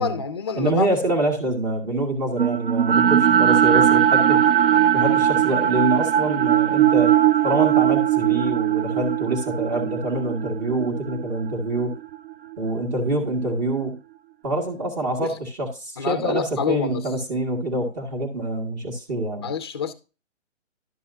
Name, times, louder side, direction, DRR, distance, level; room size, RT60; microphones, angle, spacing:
voice 1, 0.0-0.9 15.2-15.4 16.0-17.0 19.4-19.9, left 6 dB, 20° left, 0.4 m, -27 dB
voice 2, 0.6-4.5 4.9-7.2 7.4-12.0 12.6-14.0 14.4-19.5, right 2 dB, 35° right, 2.1 m, -25 dB
sound 1, 2.4-12.6, right 10 dB, 50° right, 0.4 m, -19 dB
11.5 x 7.5 x 2.7 m
hypercardioid pair, 155°, 38 cm